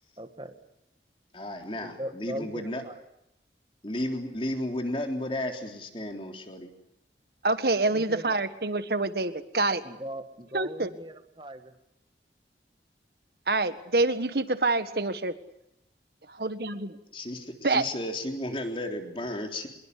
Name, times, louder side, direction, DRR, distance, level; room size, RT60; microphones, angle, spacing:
voice 1, 0.2-0.6 1.8-3.0 7.8-8.4 9.8-11.7, right 1 dB, 25° right, 8 dB, 1.5 m, -39 dB
voice 2, 1.3-2.8 3.8-6.7 17.1-19.7, left 1 dB, 30° left, 4 dB, 3.6 m, -33 dB
voice 3, 7.4-9.8 10.5-10.9 13.5-15.3 16.3-17.0 17.6-17.8, right 2 dB, 60° right, 11 dB, 1.6 m, -26 dB
26.0 x 22.0 x 8.4 m, 0.82 s
head